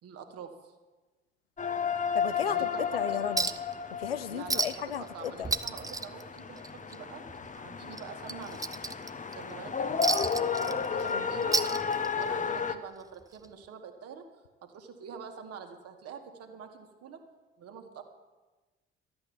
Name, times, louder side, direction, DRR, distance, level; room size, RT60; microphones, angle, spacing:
voice 1, 0.0-0.7 2.4-2.8 3.1-3.2 4.3-7.2 7.6-8.7 9.4-10.1 10.9-11.6 12.2-14.2 14.6-17.2 17.6-18.0, right 7 dB, 55° right, 4 dB, 2.1 m, -46 dB
sound 1, 1.6-12.8, left 6 dB, 25° left, 1.0 m, -33 dB
voice 2, 2.1-2.7 2.9-3.5 3.9-5.5 11.1-11.3, left 8 dB, 80° left, 14 dB, 0.6 m, -34 dB
Chink clink, 3.4-3.7 4.0-4.1 4.5-5.0 5.3-7.0 7.3-7.5 7.9-9.3 10.0-11.1 11.4-12.3 13.4-13.5, right 3 dB, 10° right, 0.8 m, -31 dB
13.0 x 8.9 x 9.7 m, 1.2 s
figure-of-eight pair, 45°, 29 cm